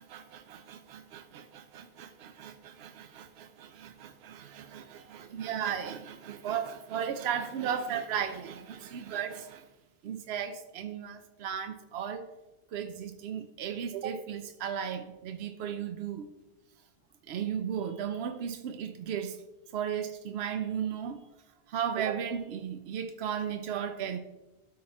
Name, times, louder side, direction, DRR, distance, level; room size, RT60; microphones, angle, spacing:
voice 1, 0.0-9.7 10.0-12.3 12.7-16.3 17.3-19.4 19.7-21.2 21.7-24.2, right 8 dB, 85° right, 9 dB, 0.9 m, -35 dB
12.5 x 4.2 x 4.3 m, 1.0 s
omnidirectional pair, 1.0 m